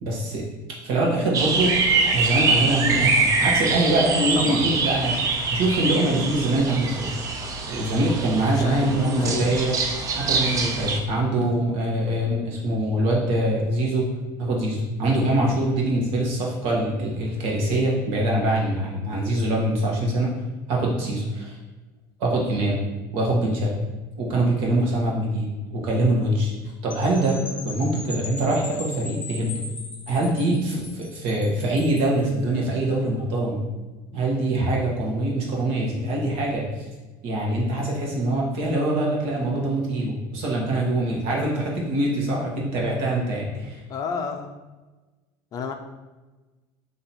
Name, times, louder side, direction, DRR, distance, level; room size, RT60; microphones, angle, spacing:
voice 1, 0.0-0.4 0.8-5.2 5.5-7.1 7.7-9.7 10.2-14.1 14.4-20.3 20.7-21.6 22.2-22.8 23.1-23.7 24.2-26.5 26.8-27.4 27.6-29.6 30.1-33.6 34.1-36.9 37.2-43.8, right 1 dB, 65° right, -2 dB, 1.3 m, -24 dB
sound 1, 1.3-11.0, right 4 dB, 35° right, 0.5 m, -24 dB
voice 2, 8.5-9.6 43.9-44.5 45.5-45.7, left 5 dB, 40° left, 5 dB, 0.4 m, -30 dB
sound 2, 26.9-32.2, left 2 dB, 15° left, 0.9 m, -39 dB
3.9 x 2.9 x 4.3 m, 1.2 s
cardioid pair, 135°, 10 cm